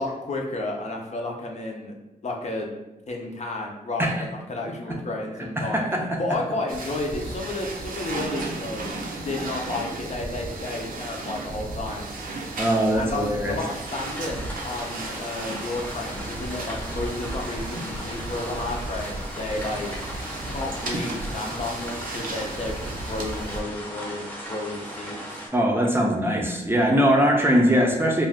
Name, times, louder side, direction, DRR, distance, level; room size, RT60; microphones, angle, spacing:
voice 1, 0.0-1.9 2.2-2.7 3.1-5.9 6.2-8.9 9.2-12.1 12.9-19.9 20.5-25.4, left 2 dB, 45° left, 0 dB, 0.5 m, -32 dB
voice 2, 5.6-6.2 12.6-13.6 25.5-28.3, equal, 15° right, -1 dB, 0.5 m, -21 dB
sound 1, 6.7-23.6, right 2 dB, 65° right, 0.5 m, -34 dB
sound 2, 13.8-25.5, equal, 10° left, 0.8 m, -37 dB
2.4 x 2.2 x 3.5 m, 0.99 s
cardioid pair, 75°, 15 cm